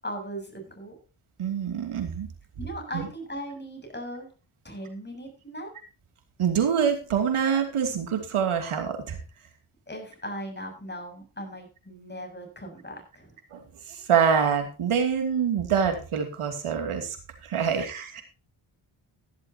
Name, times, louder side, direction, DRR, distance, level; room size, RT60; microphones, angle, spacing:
voice 1, 0.0-1.0 2.6-4.3 4.6-5.7 9.9-13.4 17.6-17.8, equal, 20° left, 4 dB, 7.5 m, -38 dB
voice 2, 1.4-2.3 2.9-3.1 6.4-9.2 13.5-13.6 13.9-17.2 17.4-18.2, right 7 dB, 85° right, 5 dB, 2.8 m, -25 dB
15.5 x 12.0 x 2.9 m, 0.33 s
cardioid pair, 70°, 49 cm